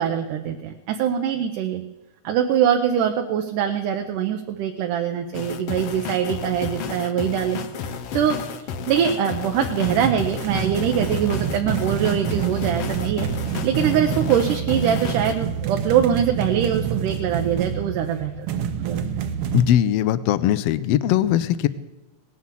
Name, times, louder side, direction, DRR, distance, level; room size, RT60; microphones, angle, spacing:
voice 1, 0.0-1.8 2.2-7.6 8.1-19.0, right 9 dB, 80° right, 5 dB, 2.4 m, -23 dB
sound 1, 5.3-15.4, left 6 dB, 65° left, 1.6 m, -32 dB
sound 2, 9.8-19.6, right 8 dB, 65° right, 1.6 m, -27 dB
voice 2, 19.5-21.7, left 12 dB, 85° left, 15 dB, 1.4 m, -20 dB
18.5 x 9.7 x 7.4 m, 1.1 s
omnidirectional pair, 3.7 m